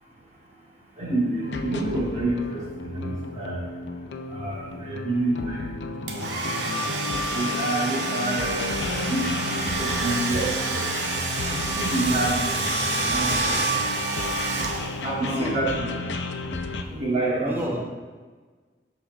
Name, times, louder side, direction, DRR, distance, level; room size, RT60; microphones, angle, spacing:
voice 1, 0.0-6.8 7.0-10.9 11.7-12.7 13.1-14.1 15.0-16.3 16.9-17.8, right 2 dB, 45° right, -5 dB, 1.3 m, -29 dB
sound 1, 1.4-16.8, left 3 dB, 90° left, 0.5 m, -33 dB
Domestic sounds home sounds, 6.1-15.2, right 2 dB, 75° right, 0.8 m, -28 dB
voice 2, 15.2-15.6 17.4-17.8, equal, 15° right, 0 dB, 0.8 m, -30 dB
12.0 x 4.3 x 2.4 m, 1.4 s
head